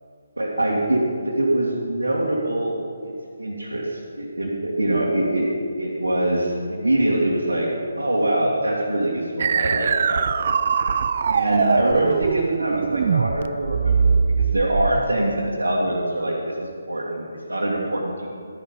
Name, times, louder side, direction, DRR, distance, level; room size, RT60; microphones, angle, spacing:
voice 1, 0.4-3.1 3.4-5.5 5.8-10.3 11.3-18.3, right 1 dB, 75° right, -5 dB, 2.1 m, -24 dB
sound 1, 9.4-15.1, right 6 dB, 40° right, 0.4 m, -22 dB
13.0 x 9.5 x 5.3 m, 2.5 s
figure-of-eight pair, 145°, 0 cm